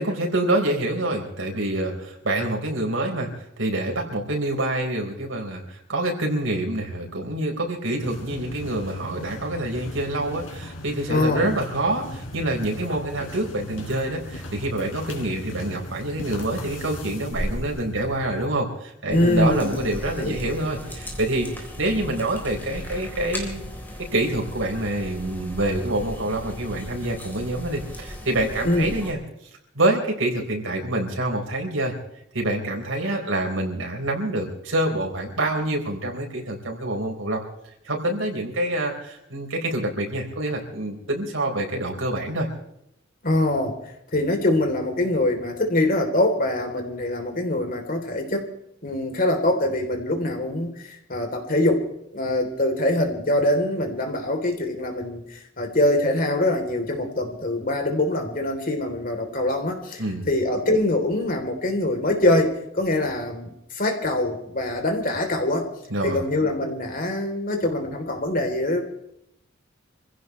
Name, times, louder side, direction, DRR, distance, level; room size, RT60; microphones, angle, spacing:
voice 1, 0.0-3.3 3.6-23.6 24.1-29.2 29.7-31.9 32.3-37.4 37.8-42.5 60.0-60.3 65.9-66.2, right 1 dB, 85° right, 1 dB, 4.5 m, -26 dB
sound 1, 8.0-18.5, left 1 dB, 80° left, 3.9 m, -36 dB
voice 2, 11.1-11.5 19.1-19.9 20.2-20.3 28.6-28.9 43.2-43.7 44.1-48.5 48.8-51.9 52.1-65.7 66.0-68.8, left 1 dB, 45° left, 4 dB, 3.5 m, -24 dB
sound 2, 19.1-29.1, equal, 10° left, 3.8 m, -37 dB
26.5 x 16.0 x 3.2 m, 0.78 s
head